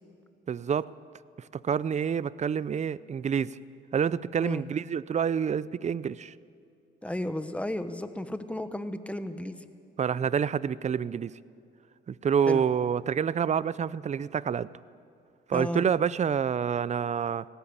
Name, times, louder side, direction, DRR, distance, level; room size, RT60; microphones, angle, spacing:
voice 1, 0.5-0.9 1.6-3.6 3.9-6.3 10.0-11.3 12.1-14.7 15.5-17.5, right 7 dB, 35° right, 19 dB, 0.5 m, -27 dB
voice 2, 7.0-9.6 12.5-12.6 15.5-15.8, left 1 dB, 5° left, 10 dB, 1.2 m, -33 dB
18.5 x 17.0 x 8.7 m, 2.5 s
cardioid pair, 90°, 20 cm